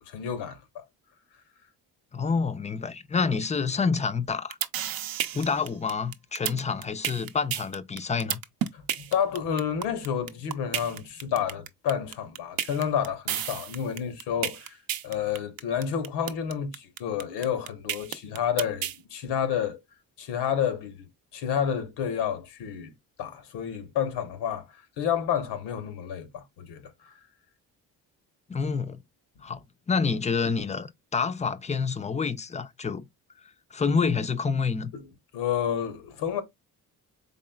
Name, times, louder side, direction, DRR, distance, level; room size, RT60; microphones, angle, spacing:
voice 1, 0.1-0.8 8.7-14.8 15.0-19.8 20.2-21.1 21.3-22.9 23.2-27.2 34.9-35.1 35.3-36.4, left 8 dB, 85° left, 0.9 m, -30 dB
voice 2, 2.1-4.6 5.3-8.4 28.5-29.0 29.4-33.1 33.7-34.9, left 5 dB, 20° left, 0.3 m, -28 dB
sound 1, 4.3-19.0, right 10 dB, 60° right, 0.6 m, -31 dB
3.9 x 3.5 x 2.2 m
cardioid pair, 75°, 40 cm